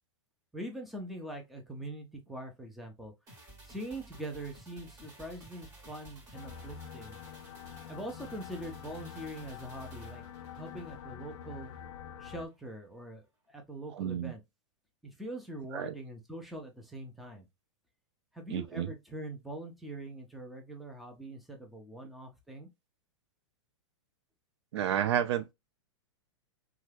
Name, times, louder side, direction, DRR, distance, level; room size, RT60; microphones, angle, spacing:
voice 1, 0.5-3.1 3.6-7.2 7.9-10.2 10.5-11.7 12.2-14.4 15.0-17.5 18.3-22.7, right 1 dB, ahead, 0.6 m, -43 dB
sound 1, 3.3-11.8 12.2-12.3, right 2 dB, 20° right, 1.1 m, -55 dB
sound 2, 6.3-12.5, left 8 dB, 60° left, 0.4 m, -46 dB
voice 2, 14.0-14.3 15.7-15.9 18.5-18.9 24.7-25.5, right 10 dB, 65° right, 0.4 m, -30 dB
2.7 x 2.3 x 3.2 m
hypercardioid pair, 135°, 16 cm